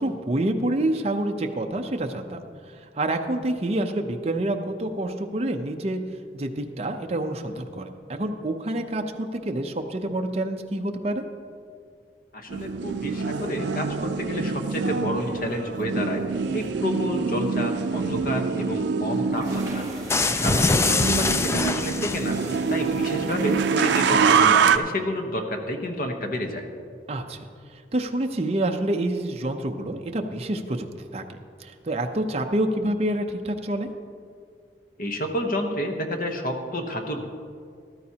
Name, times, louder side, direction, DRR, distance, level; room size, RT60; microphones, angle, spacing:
voice 1, 0.0-2.4 3.0-6.0 6.3-11.2 20.3-20.6 27.1-27.4 27.9-30.9 31.1-31.2 31.6-33.9, right 1 dB, 35° right, 4 dB, 0.6 m, -27 dB
voice 2, 12.3-16.2 16.5-19.8 20.3-22.4 22.7-26.6 35.0-37.2, equal, 50° left, 4 dB, 1.1 m, -30 dB
sound 1, 12.5-24.8, right 5 dB, 85° right, 0.4 m, -25 dB
sound 2, 19.2-24.2, right 1 dB, 20° right, 1.3 m, -42 dB
sound 3, 20.1-22.6, left 3 dB, 15° left, 0.3 m, -23 dB
13.5 x 12.5 x 2.9 m, 2.2 s
head